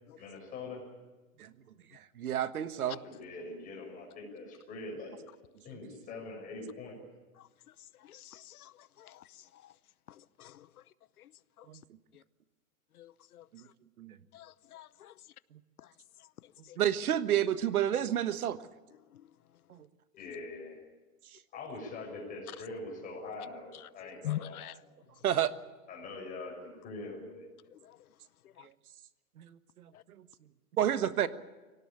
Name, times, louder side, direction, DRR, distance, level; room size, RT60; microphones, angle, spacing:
voice 1, 0.2-0.8 2.7-5.2 5.6-7.0 20.2-20.8 21.5-24.6 25.9-27.5, left 3 dB, 20° left, 0 dB, 6.4 m, -43 dB
voice 2, 1.9-3.0 11.7-11.8 13.5-13.7 14.0-14.2 16.8-18.7 19.7-19.9 25.2-25.5 28.6-28.7 29.4-29.9 30.2-30.3 30.8-31.3, right 10 dB, 80° right, 13 dB, 1.4 m, -30 dB
voice 3, 8.0-9.3 9.5-9.7 10.1-10.7 11.2-11.3 11.6-11.7 12.1-12.2 12.9-13.5 14.3-15.1 16.7-16.8 19.1-19.2 24.2-24.7 27.7-28.0 28.6-28.7 29.9-30.0, left 13 dB, 80° left, 18 dB, 0.9 m, -44 dB
23.5 x 18.0 x 8.7 m, 1.2 s
hypercardioid pair, 160°, 44 cm